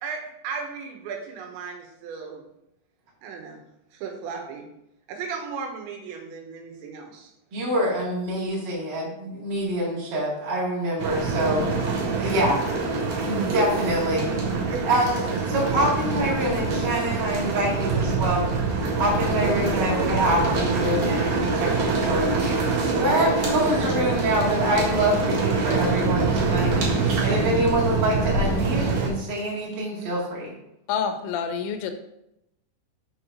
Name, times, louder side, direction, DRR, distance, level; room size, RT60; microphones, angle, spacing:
voice 1, 0.0-2.5 3.2-3.6 3.9-4.7 5.1-7.3 12.5-12.7 13.4-13.8 14.7-14.9 23.1-23.6, right 5 dB, 80° right, 2 dB, 3.3 m, -35 dB
voice 2, 7.5-11.7 12.2-12.6 13.2-14.4 14.8-18.4 19.0-30.5, equal, 35° right, -5 dB, 2.0 m, -25 dB
sound 1, 11.0-29.1, right 4 dB, 55° right, 2.8 m, -25 dB
voice 3, 30.9-31.9, left 7 dB, 85° left, 7 dB, 2.9 m, -27 dB
7.0 x 4.6 x 5.2 m, 0.83 s
omnidirectional pair, 5.2 m